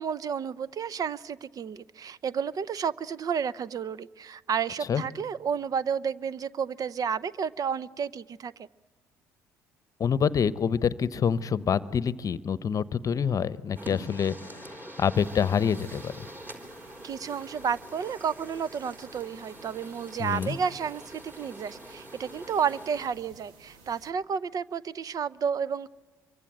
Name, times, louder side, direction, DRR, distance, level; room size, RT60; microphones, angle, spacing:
voice 1, 0.0-8.5 17.0-25.9, right 7 dB, 45° right, 19 dB, 0.8 m, -31 dB
voice 2, 10.0-16.3 20.2-20.6, left 7 dB, 40° left, 17 dB, 0.9 m, -27 dB
sound 1, 13.8-23.1, equal, 25° right, 4.3 m, -45 dB
sound 2, 15.1-24.1, right 4 dB, 75° right, 2.1 m, -55 dB
26.0 x 24.0 x 9.1 m, 1.3 s
hypercardioid pair, 50°, 9 cm